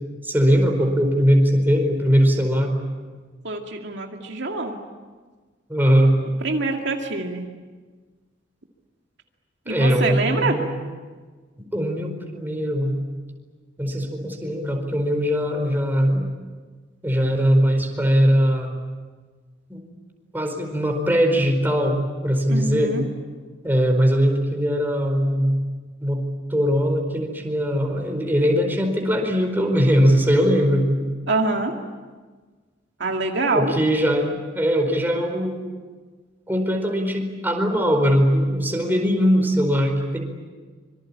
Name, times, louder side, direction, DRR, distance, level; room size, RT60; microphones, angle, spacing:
voice 1, 0.2-2.7 5.7-6.2 9.7-10.7 11.7-12.9 13.8-16.3 17.0-18.7 19.7-19.8 20.3-22.9 23.6-25.6 26.0-26.2 26.5-30.9 33.5-35.6 36.5-40.2, equal, 10° right, 3 dB, 4.6 m, -20 dB
voice 2, 3.4-4.8 6.4-7.4 9.7-10.6 22.5-23.0 31.3-31.7 33.0-33.7, right 3 dB, 65° right, 2 dB, 2.3 m, -25 dB
25.5 x 24.5 x 8.7 m, 1.4 s
head